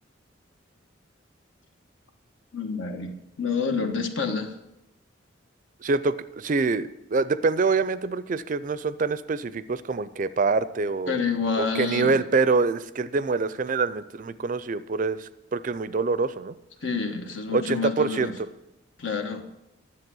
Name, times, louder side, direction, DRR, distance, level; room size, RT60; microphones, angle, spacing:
voice 1, 2.5-4.5 11.1-12.1 16.8-18.3 19.0-19.4, left 5 dB, 75° left, 5 dB, 1.3 m, -28 dB
voice 2, 5.8-11.2 11.6-16.6 17.5-18.3, right 4 dB, 40° right, 15 dB, 0.4 m, -25 dB
10.5 x 7.4 x 6.2 m, 0.89 s
head